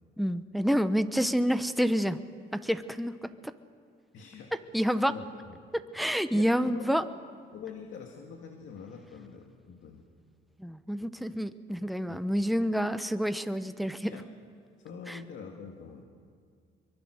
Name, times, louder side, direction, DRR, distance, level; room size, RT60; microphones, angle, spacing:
voice 1, 0.2-2.2 2.5-3.1 3.4-3.5 4.7-5.1 5.9-7.0 10.6-14.1 15.1-15.2, equal, ahead, 10 dB, 1.0 m, -28 dB
voice 2, 4.1-4.5 4.9-5.6 6.3-7.0 7.5-10.1 12.1-12.4 14.0-14.3 14.8-16.0, left 6 dB, 75° left, 2 dB, 2.2 m, -45 dB
25.5 x 23.0 x 6.5 m, 2.1 s
cardioid pair, 90°, 20 cm